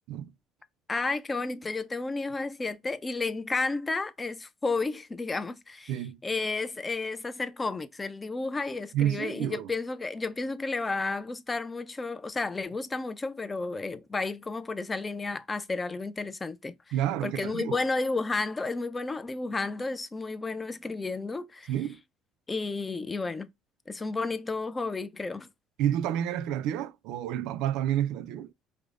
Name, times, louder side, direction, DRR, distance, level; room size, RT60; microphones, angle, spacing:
voice 1, 0.9-5.9 6.2-16.7 17.2-21.7 22.5-23.5 23.9-25.5, left 3 dB, 15° left, 0.3 m, -32 dB
voice 2, 8.9-9.7 16.9-17.8 21.7-22.0 25.8-28.5, right 11 dB, 75° right, 0.3 m, -29 dB
5.0 x 2.1 x 2.4 m
cardioid pair, 140°, 0 cm